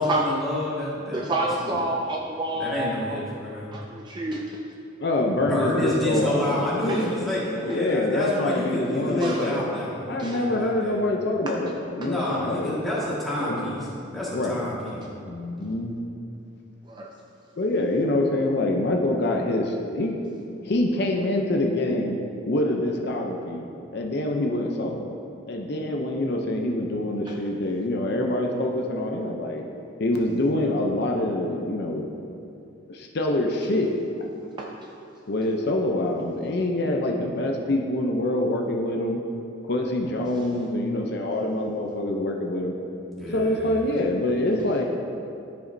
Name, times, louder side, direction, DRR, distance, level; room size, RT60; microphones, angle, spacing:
voice 1, 0.0-1.7 2.5-3.8 5.4-10.9 12.0-15.0 43.2-43.7, left 1 dB, ahead, -9 dB, 1.7 m, -29 dB
voice 2, 1.1-3.2 3.7-4.6 6.9-7.0 9.2-9.6 10.2-10.4 12.0-12.1 16.9-17.1 34.6-34.7, right 2 dB, 20° right, 0 dB, 0.3 m, -29 dB
voice 3, 5.0-9.6 10.1-12.8 13.4-13.7 14.3-14.6 15.2-15.9 17.6-20.2 20.6-22.2 22.5-23.7 23.9-25.1 25.5-29.6 30.0-32.1 32.9-33.9 35.3-39.2 39.7-42.7 43.3-44.8, left 1 dB, 55° left, 1 dB, 0.6 m, -25 dB
13.0 x 5.1 x 2.6 m, 2.7 s
head